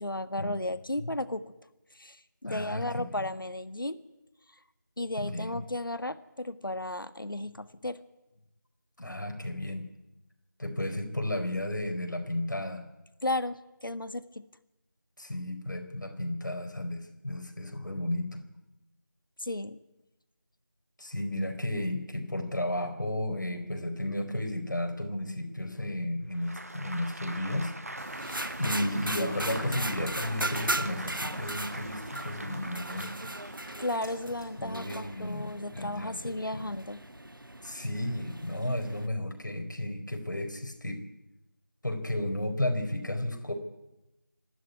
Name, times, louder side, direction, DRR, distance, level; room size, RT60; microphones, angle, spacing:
voice 1, 0.0-1.4 1.9-4.0 5.0-8.0 13.2-14.4 19.4-19.8 33.8-37.0, left 1 dB, 90° left, 11 dB, 1.7 m, -34 dB
voice 2, 2.4-3.3 5.2-5.6 9.0-9.8 10.6-12.8 15.2-18.4 21.0-27.7 28.6-33.4 34.6-36.6 37.6-41.0 41.8-43.5, left 1 dB, 65° left, 4 dB, 4.9 m, -33 dB
Applause, 26.3-34.1, right 1 dB, 45° right, 1.2 m, -42 dB
sound 1, 28.0-39.1, right 1 dB, 90° right, 1.7 m, -38 dB
sound 2, 28.6-35.6, equal, 5° right, 4.6 m, -49 dB
26.0 x 12.5 x 9.6 m, 0.97 s
figure-of-eight pair, 175°, 11 cm